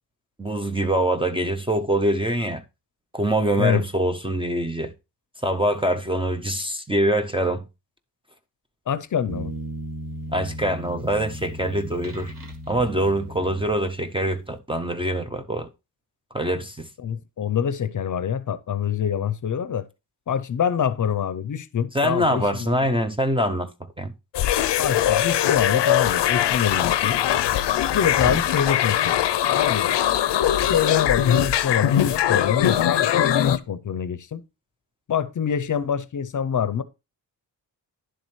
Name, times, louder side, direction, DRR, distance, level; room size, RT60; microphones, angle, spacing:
voice 1, 0.4-2.6 3.1-4.9 5.4-7.6 10.3-12.3 12.7-15.7 16.3-16.9 21.9-23.7 24.0-24.1 28.3-28.4, right 1 dB, 15° right, 0.5 m, -24 dB
voice 2, 8.9-9.5 17.0-19.9 20.3-22.7 24.8-27.2 27.9-29.2 29.5-29.9 30.6-34.4 35.1-36.8, left 8 dB, 50° left, 0.6 m, -25 dB
sound 1, 9.3-14.2, equal, 50° right, 1.8 m, -36 dB
sound 2, 24.3-33.6, left 11 dB, 85° left, 0.6 m, -21 dB
10.5 x 7.4 x 3.1 m
wide cardioid pair, 170°, 41 cm